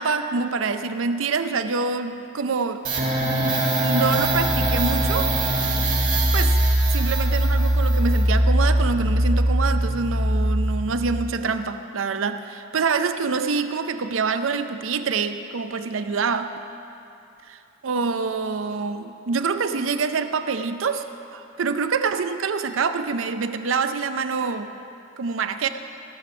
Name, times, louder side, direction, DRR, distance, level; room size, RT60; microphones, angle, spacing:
voice 1, 0.0-2.8 3.8-5.3 6.3-6.6 6.9-16.6 17.5-21.1 21.3-24.7 25.2-25.7, right 5 dB, 75° right, 9 dB, 0.6 m, -26 dB
sound 1, 2.8-11.3, right 1 dB, 40° right, 1.5 m, -21 dB
16.0 x 6.7 x 6.0 m, 2.7 s
head